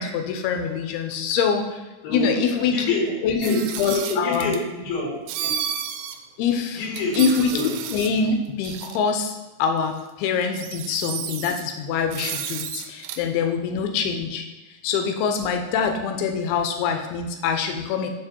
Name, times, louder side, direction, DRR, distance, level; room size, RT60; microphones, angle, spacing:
voice 1, 0.0-1.8 2.1-2.8 3.2-4.5 6.4-6.8 7.2-14.5 14.8-18.1, left 6 dB, 90° left, 5 dB, 2.7 m, -24 dB
voice 2, 2.0-5.1 5.4-5.6 6.8-7.7, left 1 dB, 70° left, -3 dB, 3.5 m, -28 dB
sound 1, 3.4-4.6 5.3-6.2 6.5-6.6 6.9-8.2 8.6-9.0 10.0-10.1 10.4-11.6 12.1-13.2, right 9 dB, 85° right, 2.5 m, -32 dB
8.9 x 3.6 x 4.4 m, 1.1 s
omnidirectional pair, 4.5 m